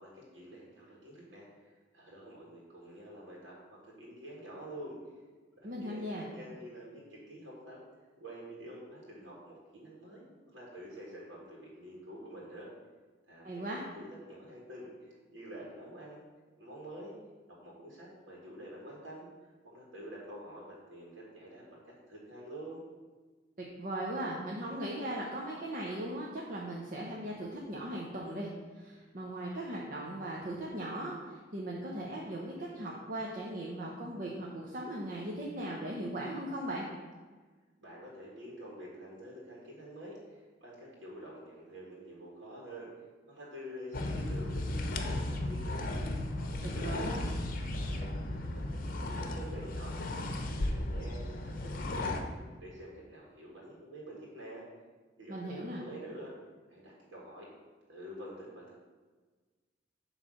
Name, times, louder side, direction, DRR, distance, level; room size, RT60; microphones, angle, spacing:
voice 1, 0.0-5.0 5.6-7.8 8.2-12.7 13.3-13.7 13.9-16.3 16.6-17.2 17.5-22.9 37.8-42.9 43.3-45.8 46.4-47.3 47.8-48.7 48.9-54.6 55.2-56.3 56.7-57.5 57.9-58.8, right 1 dB, 80° right, -4 dB, 1.9 m, -48 dB
voice 2, 5.6-6.3 13.4-13.8 23.6-28.5 28.7-36.9 46.8-47.2 55.3-55.8, right 1 dB, 50° right, -3 dB, 0.9 m, -38 dB
sound 1, 43.9-52.2, left 1 dB, 50° left, 0.8 m, -35 dB
8.1 x 3.3 x 6.4 m, 1.4 s
head